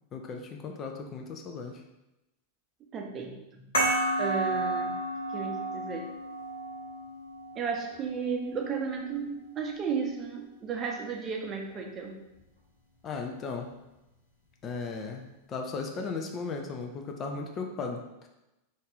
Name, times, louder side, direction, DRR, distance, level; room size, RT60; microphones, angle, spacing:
voice 1, 0.1-1.8 13.0-13.7 14.6-18.3, left 4 dB, 30° left, 3 dB, 0.4 m, -36 dB
voice 2, 2.9-3.6 4.2-4.9 5.3-6.1 7.6-12.2, right 5 dB, 25° right, 1 dB, 0.6 m, -34 dB
sound 1, 3.7-8.8, right 2 dB, 65° left, 1.0 m, -32 dB
4.0 x 2.5 x 3.4 m, 0.95 s
figure-of-eight pair, 90°, 0 cm